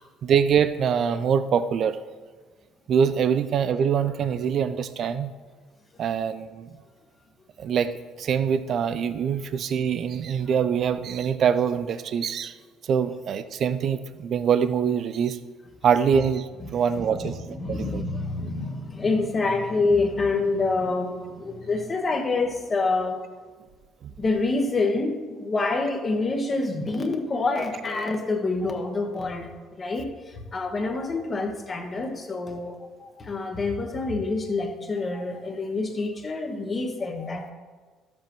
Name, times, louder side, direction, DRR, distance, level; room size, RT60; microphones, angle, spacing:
voice 1, 0.2-2.0 2.9-5.3 6.0-6.7 7.6-7.9 8.2-12.5 12.8-15.4 15.8-18.0 24.0-24.1, right 7 dB, 55° right, 12 dB, 0.5 m, -24 dB
voice 2, 17.0-23.2 24.2-37.5, left 3 dB, 30° left, 3 dB, 1.2 m, -27 dB
12.5 x 7.5 x 3.1 m, 1.4 s
supercardioid pair, 85°, 0 cm